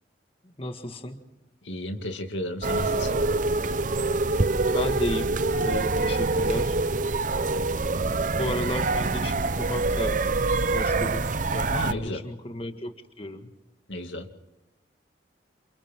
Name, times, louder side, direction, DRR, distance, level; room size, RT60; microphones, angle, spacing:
voice 1, 0.4-1.3 4.7-6.8 8.4-10.3 10.7-13.5, left 1 dB, 30° left, 6 dB, 1.7 m, -34 dB
voice 2, 1.6-3.2 7.9-8.1 11.7-12.2 13.9-14.3, left 1 dB, 90° left, 5 dB, 2.4 m, -33 dB
sound 1, 2.6-11.9, right 3 dB, 45° right, 0.7 m, -25 dB
28.5 x 28.5 x 3.7 m, 0.96 s
head